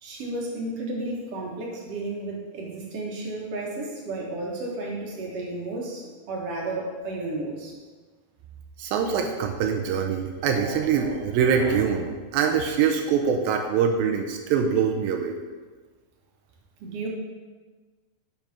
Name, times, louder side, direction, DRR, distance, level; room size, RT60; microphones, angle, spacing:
voice 1, 0.0-7.7 16.8-17.1, right 2 dB, 60° right, -2 dB, 1.8 m, -32 dB
voice 2, 8.8-15.4, right 7 dB, 90° right, 2 dB, 2.4 m, -24 dB
7.1 x 5.5 x 5.8 m, 1.4 s
omnidirectional pair, 4.2 m